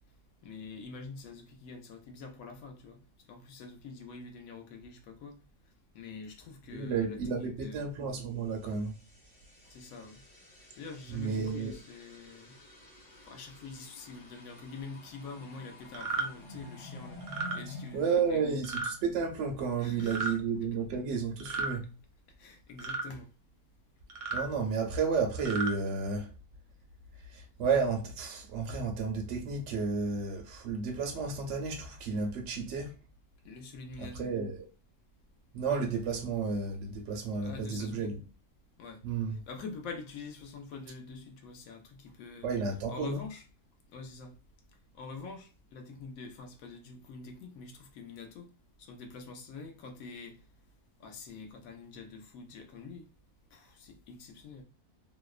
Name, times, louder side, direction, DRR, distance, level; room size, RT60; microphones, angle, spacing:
voice 1, 0.4-3.0 3.3-5.4 5.9-7.8 9.6-10.2 10.8-12.6 13.2-18.6 19.8-20.3 22.4-23.3 33.4-34.3 37.4-38.1 38.8-39.0 39.3-42.5 42.9-43.4 43.9-44.3 44.9-48.5 48.8-50.4 51.0-53.1 53.5-54.6, left 4 dB, 70° left, 1.0 m, -45 dB
voice 2, 6.7-8.9 11.1-11.7 17.9-21.8 24.3-26.3 27.3-32.9 34.0-34.7 35.5-38.2 39.0-39.4 42.4-43.2, right 5 dB, 65° right, 0.7 m, -32 dB
sound 1, 8.5-19.2, left 2 dB, 30° left, 0.9 m, -50 dB
sound 2, 15.9-16.3 17.2-17.6 18.6-18.9 20.0-20.3 21.4-21.8 22.8-23.1 24.1-24.5 25.3-25.7, right 4 dB, 85° right, 1.1 m, -34 dB
2.8 x 2.0 x 2.3 m
omnidirectional pair, 1.6 m